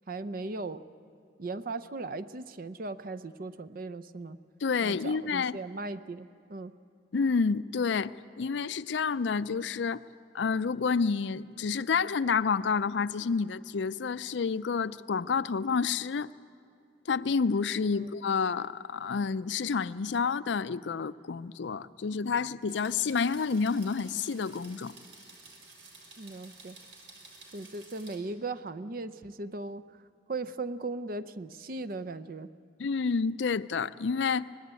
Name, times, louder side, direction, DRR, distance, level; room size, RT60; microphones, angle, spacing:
voice 1, 0.1-0.8 1.4-4.4 4.8-6.7 17.9-18.1 26.2-26.8 27.5-30.0 30.3-32.5, right 3 dB, 50° right, 13 dB, 0.6 m, -38 dB
voice 2, 4.6-5.6 7.1-10.0 10.3-16.3 17.1-24.9 32.8-34.5, left 5 dB, 75° left, 15 dB, 0.5 m, -29 dB
sound 1, 22.7-28.2, right 3 dB, 85° right, 3.9 m, -52 dB
25.0 x 19.5 x 8.3 m, 2.4 s
head